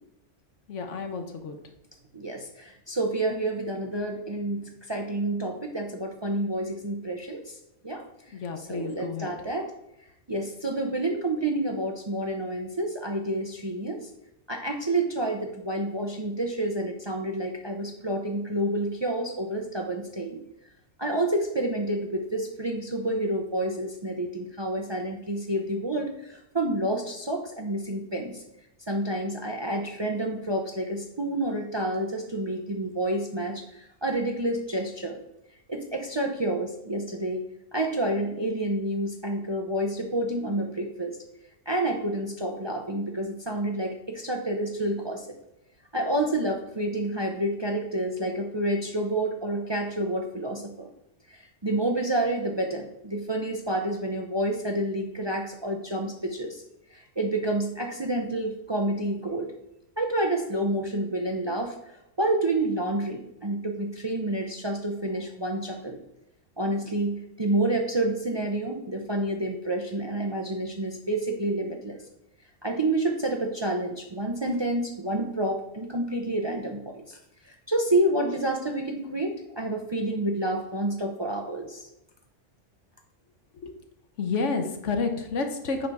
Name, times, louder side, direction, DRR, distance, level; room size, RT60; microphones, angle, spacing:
voice 1, 0.7-1.6 8.3-9.3 83.6-83.7 84.2-85.9, left 4 dB, 75° left, 5 dB, 1.2 m, -30 dB
voice 2, 2.1-4.6 4.9-7.6 7.8-8.0 8.6-9.7 10.3-14.0 14.5-20.4 21.0-28.4 28.9-35.2 35.7-37.4 37.7-41.2 41.7-45.3 45.9-50.9 51.3-56.6 56.9-59.5 60.0-61.7 62.2-66.0 66.6-72.0 72.6-77.0 77.5-81.9, right 1 dB, 30° right, 2 dB, 0.5 m, -29 dB
7.6 x 5.4 x 3.5 m, 0.83 s
omnidirectional pair, 1.3 m